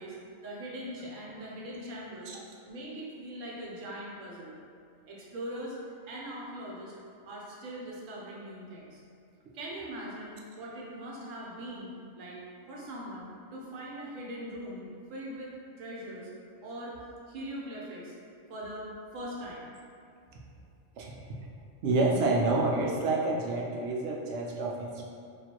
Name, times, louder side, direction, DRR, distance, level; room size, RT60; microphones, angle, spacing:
voice 1, 0.0-2.3 2.6-4.5 5.1-5.8 6.1-6.9 7.3-9.0 9.5-11.9 12.2-12.4 12.7-16.3 16.6-17.0 17.3-18.2 18.5-19.7, right 1 dB, 85° right, -4 dB, 1.2 m, -41 dB
voice 2, 21.8-25.0, right 2 dB, 70° right, -2 dB, 0.9 m, -28 dB
4.6 x 2.6 x 2.9 m, 2.4 s
omnidirectional pair, 1.3 m